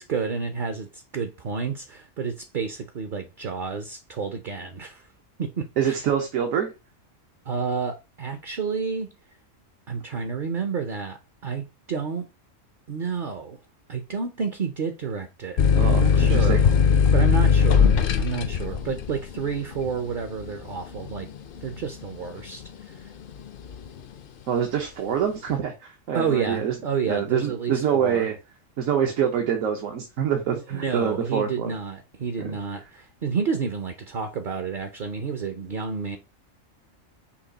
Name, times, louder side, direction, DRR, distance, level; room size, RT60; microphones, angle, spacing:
voice 1, 0.0-5.1 5.4-6.0 7.5-9.1 9.9-12.3 12.9-13.6 13.9-16.6 17.1-21.3 21.6-23.1 26.1-28.3 30.7-36.2, right 5 dB, 55° right, 0.6 m, -30 dB
voice 2, 5.8-6.7 15.7-16.6 24.5-26.7 27.1-28.4 28.8-31.7 32.4-32.5, right 8 dB, 80° right, 1.2 m, -25 dB
sound 1, 15.6-22.9 23.3-24.0, left 6 dB, 60° left, 0.5 m, -20 dB
5.8 x 2.3 x 3.8 m
omnidirectional pair, 1.4 m